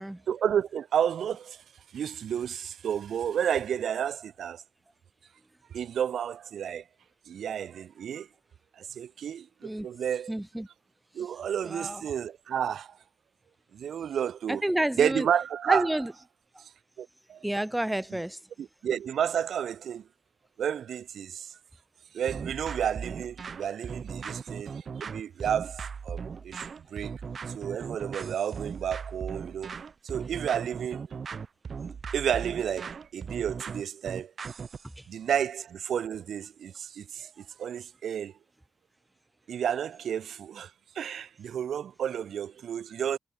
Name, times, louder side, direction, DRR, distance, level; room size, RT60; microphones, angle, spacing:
voice 1, 0.3-1.6 1.9-4.6 5.7-6.8 7.3-8.3 8.8-10.3 11.1-13.0 13.7-14.6 15.0-16.0 17.0-17.4 18.6-20.1 20.6-21.5 22.1-27.1 27.5-29.7 30.0-31.0 32.1-34.3 35.1-38.3 39.5-43.2, right 9 dB, 75° right, 1.4 m, -31 dB
voice 2, 10.3-10.7 11.6-12.0 14.5-15.3 15.7-16.1 17.4-18.4 35.0-35.1, right 1 dB, 5° right, 1.0 m, -29 dB
sound 1, 22.3-34.9, right 6 dB, 50° right, 6.8 m, -38 dB
cardioid pair, 100°, 0 cm